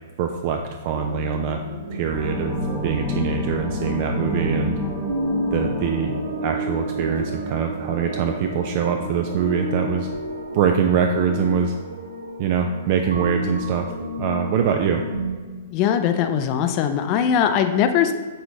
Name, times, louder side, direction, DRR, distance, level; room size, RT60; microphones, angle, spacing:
voice 1, 0.2-1.6 1.9-2.5 2.8-4.8 5.5-6.2 6.4-10.1 10.5-11.8 12.4-13.9 14.2-15.0, right 7 dB, 50° right, 4 dB, 0.3 m, -23 dB
sound 1, 0.9-15.4, right 1 dB, 90° right, 0.6 m, -31 dB
sound 2, 2.1-7.5, left 1 dB, 10° right, 0.9 m, -29 dB
voice 2, 15.7-18.1, left 8 dB, 40° left, 7 dB, 0.3 m, -20 dB
6.2 x 2.8 x 2.7 m, 1.4 s
hypercardioid pair, 115°, 0 cm